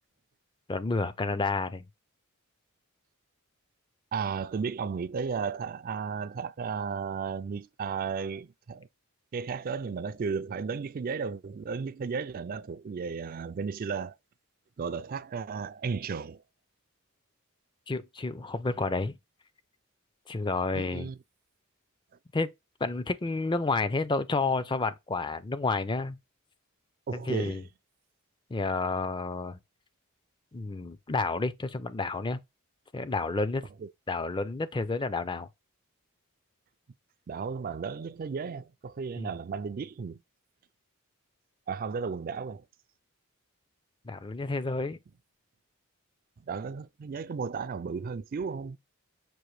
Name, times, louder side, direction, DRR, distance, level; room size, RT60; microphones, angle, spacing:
voice 1, 0.7-1.8 17.9-19.1 20.3-21.1 22.3-22.5 22.8-26.2 27.1-27.6 28.5-29.6 30.5-32.4 32.9-33.7 34.1-35.5 39.2-39.3 44.0-45.0, left 3 dB, 20° left, 0.4 m, -30 dB
voice 2, 4.1-8.9 9.3-14.1 14.8-16.4 20.7-21.2 27.1-27.7 33.8-33.9 37.3-40.2 41.7-42.6 46.5-48.8, right 5 dB, 40° right, 0.3 m, -34 dB
6.0 x 2.5 x 3.1 m
head